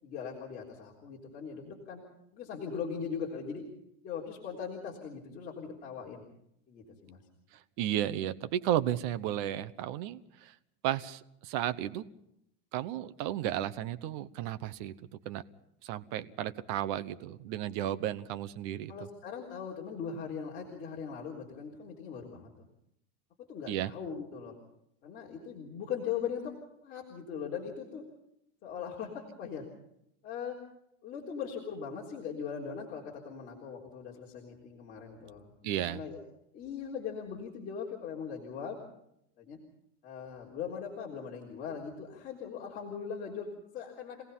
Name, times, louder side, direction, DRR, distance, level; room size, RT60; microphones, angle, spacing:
voice 1, 0.0-2.0 2.3-3.6 4.0-6.2 6.7-7.2 18.9-22.7 23.5-24.5 25.0-26.5 26.8-28.0 28.6-29.6 30.2-30.6 31.0-36.2 36.5-38.8 39.4-39.6 40.0-44.2, left 7 dB, 25° left, -4 dB, 3.9 m, -40 dB
voice 2, 7.8-10.5 10.8-12.1 12.7-14.9 15.2-15.4 15.8-18.9 23.7-23.9 35.6-36.0, right 12 dB, 50° right, 12 dB, 1.0 m, -33 dB
27.0 x 18.0 x 5.6 m, 0.77 s
supercardioid pair, 180°, 32 cm